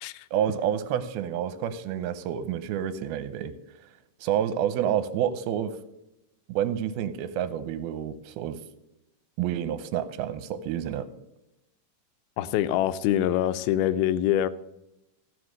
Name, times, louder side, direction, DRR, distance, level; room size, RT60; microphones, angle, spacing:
voice 1, 0.3-3.5 4.2-5.8 6.5-8.6 9.4-11.1, right 10 dB, 85° right, 13 dB, 2.6 m, -29 dB
voice 2, 12.4-14.5, left 12 dB, 85° left, 14 dB, 2.4 m, -24 dB
14.5 x 4.9 x 6.2 m, 0.91 s
omnidirectional pair, 4.3 m